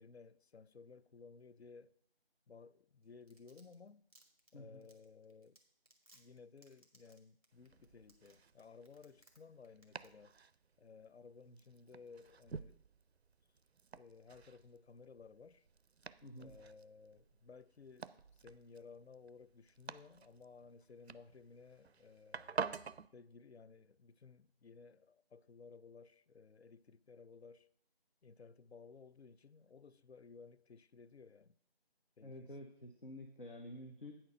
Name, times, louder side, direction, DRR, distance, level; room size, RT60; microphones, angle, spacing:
voice 1, 0.0-1.9 2.5-4.0 4.5-5.6 6.1-10.3 10.8-12.8 13.9-15.7 16.4-22.6 23.1-27.7 28.2-31.6 32.2-32.5, left 5 dB, 80° left, 0.5 m, -58 dB
Domestic sounds home sounds, 3.0-9.4 9.6-10.1 10.4-10.5, right 1 dB, 35° right, 1.4 m, -66 dB
Domestic sounds home sounds 2, 7.5-23.1, right 5 dB, 85° right, 0.5 m, -50 dB
voice 2, 16.2-16.5 32.2-34.1, left 1 dB, 55° left, 0.9 m, -50 dB
9.0 x 4.4 x 6.3 m
figure-of-eight pair, 175°, 32 cm